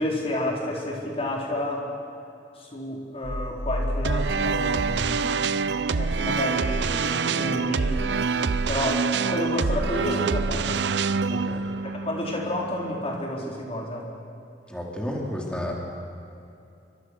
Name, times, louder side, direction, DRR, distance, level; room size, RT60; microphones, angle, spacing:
voice 1, 0.0-1.9 2.5-5.3 5.9-10.8 11.8-14.1, left 1 dB, 35° left, -1 dB, 4.6 m, -30 dB
sound 1, 3.2-6.1, left 1 dB, 80° left, 2.0 m, -33 dB
sound 2, 4.0-13.2, right 4 dB, 65° right, 0.6 m, -26 dB
voice 2, 11.3-11.6 14.7-15.7, left 1 dB, 5° left, -2 dB, 3.5 m, -31 dB
28.5 x 24.5 x 6.3 m, 2.6 s
head